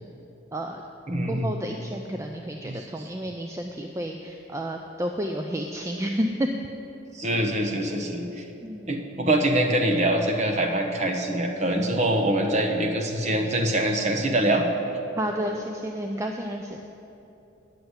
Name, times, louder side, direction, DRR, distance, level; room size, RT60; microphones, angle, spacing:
voice 1, 0.5-0.8 1.3-6.5 8.6-8.9 15.2-16.8, equal, 15° right, 3 dB, 0.3 m, -31 dB
voice 2, 1.1-1.5 2.6-2.7 7.1-8.4 8.9-14.6, right 1 dB, 35° right, 3 dB, 0.9 m, -24 dB
9.6 x 6.8 x 8.0 m, 2.9 s
head